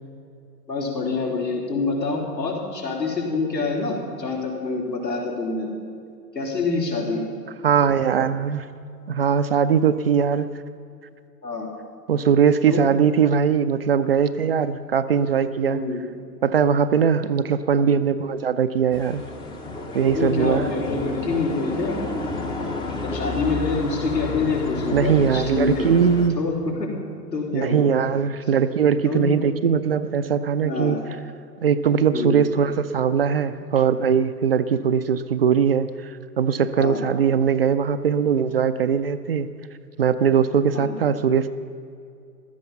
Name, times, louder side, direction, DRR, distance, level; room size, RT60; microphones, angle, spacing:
voice 1, 0.7-5.7 6.3-7.2 11.4-11.7 12.7-12.8 15.6-16.0 20.1-22.0 23.0-25.9 26.4-26.5 26.8-26.9 27.3-27.9 29.0-29.3 30.6-31.0 32.1-32.4 36.8-37.0 40.7-41.0, left 3 dB, 85° left, -3 dB, 3.9 m, -26 dB
voice 2, 7.6-8.7 9.1-10.5 12.1-15.8 16.4-19.2 19.9-20.7 24.9-26.4 27.5-31.0 31.6-39.5 40.0-41.5, right 7 dB, 40° right, 11 dB, 0.4 m, -20 dB
sound 1, 18.9-26.3, left 3 dB, 10° left, 0.6 m, -31 dB
16.0 x 13.0 x 5.6 m, 2.4 s
figure-of-eight pair, 110°, 49 cm